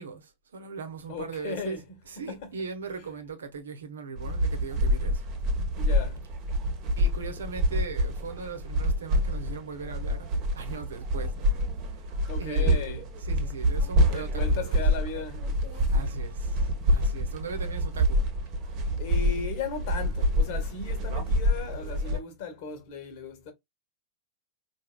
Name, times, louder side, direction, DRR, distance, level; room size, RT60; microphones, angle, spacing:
voice 1, 0.0-1.8 2.1-5.2 7.0-10.3 10.5-11.6 11.9-12.1 12.4-14.8 15.9-18.2, right 5 dB, 70° right, 0.9 m, -39 dB
voice 2, 1.1-2.0 5.8-6.2 12.3-13.0 14.1-15.5 15.7-15.9 19.0-23.5, left 5 dB, 50° left, 1.3 m, -36 dB
sound 1, 4.2-22.2, equal, 40° right, 1.1 m, -27 dB
4.6 x 2.7 x 2.2 m
figure-of-eight pair, 90°, 0 cm